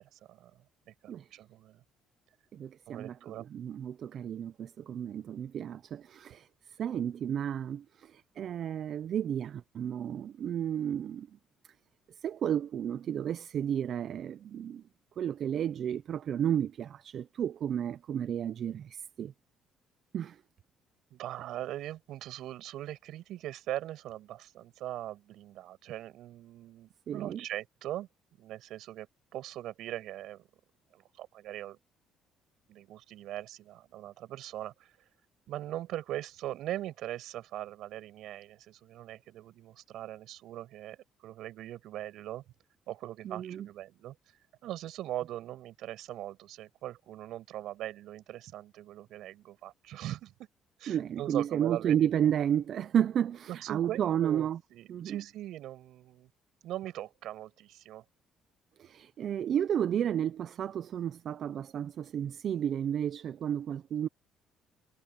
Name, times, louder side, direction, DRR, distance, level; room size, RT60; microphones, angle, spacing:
voice 1, 0.0-1.8 2.9-3.5 21.1-28.1 28.4-29.1 29.3-30.5 30.9-31.8 32.7-35.0 35.5-41.0 41.2-42.4 42.9-44.1 44.6-50.3 50.8-52.3 53.5-56.3 56.6-58.0, right 13 dB, 75° right, 6.5 m, -41 dB
voice 2, 2.5-6.5 6.8-11.3 12.2-14.8 15.2-19.3 20.1-20.4 27.1-27.4 43.2-43.7 50.9-54.6 54.9-55.2 58.8-64.1, right 9 dB, 55° right, 0.5 m, -32 dB
cardioid pair, 110°, 0 cm